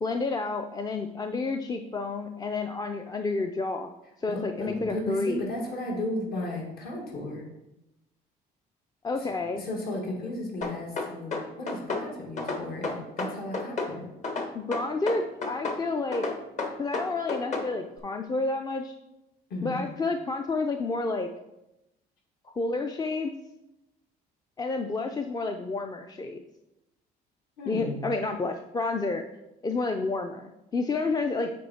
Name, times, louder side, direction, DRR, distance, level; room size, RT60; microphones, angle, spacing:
voice 1, 0.0-3.9 4.2-5.4 9.0-9.6 14.5-16.3 16.8-18.9 19.6-21.3 22.6-23.3 24.6-26.4 27.7-29.2 29.6-31.5, left 3 dB, 20° left, 5 dB, 0.4 m, -30 dB
voice 2, 4.3-7.5 9.2-14.1 19.5-19.9 27.6-28.1, left 1 dB, 65° left, -1 dB, 2.1 m, -34 dB
sound 1, 10.6-12.1 12.4-13.9 14.2-15.8 16.1-17.7, left 3 dB, 45° left, 1.3 m, -31 dB
8.4 x 4.3 x 4.3 m, 0.92 s
cardioid pair, 110°, 17 cm